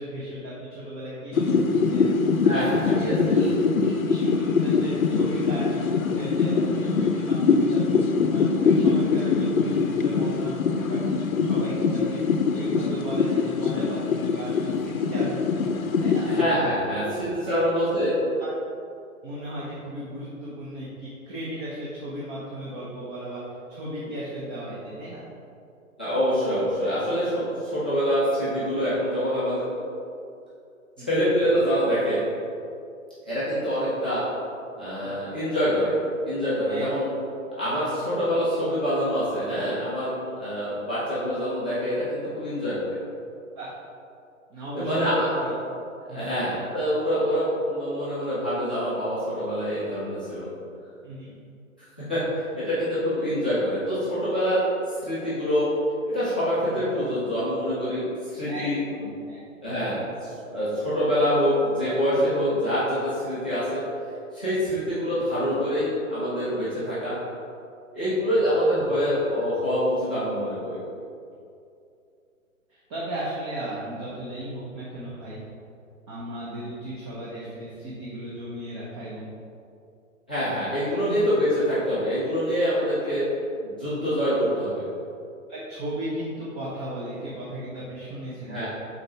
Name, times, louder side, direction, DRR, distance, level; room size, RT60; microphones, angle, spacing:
voice 1, 0.0-2.1 2.4-2.7 3.1-15.5 15.9-16.3 16.7-17.2 17.4-17.5 18.4-18.5 19.2-23.4 23.7-25.2 31.0-31.2 35.0-35.2 36.7-36.9 37.9-38.0 43.5-43.7 44.5-45.6 46.1-46.4 51.0-51.3 56.6-56.8 58.4-58.7 58.9-59.4 59.6-59.8 67.9-68.2 72.7-75.4 76.1-79.3 81.0-81.1 85.5-88.7, right 1 dB, 20° right, -8 dB, 0.8 m, -36 dB
sound 1, 1.3-16.4, left 5 dB, 80° left, 0.7 m, -23 dB
voice 2, 2.4-3.4 16.3-18.1 26.0-29.8 31.1-32.2 33.2-34.2 34.7-35.9 36.2-37.1 37.6-42.9 44.8-45.3 46.1-50.5 52.0-54.6 55.0-55.7 56.1-58.8 59.6-63.8 64.3-67.2 67.9-70.8 80.3-83.2 83.6-84.8 88.5-88.7, equal, 5° left, -13 dB, 0.4 m, -25 dB
5.1 x 4.1 x 4.6 m, 2.5 s
figure-of-eight pair, 135°, 41 cm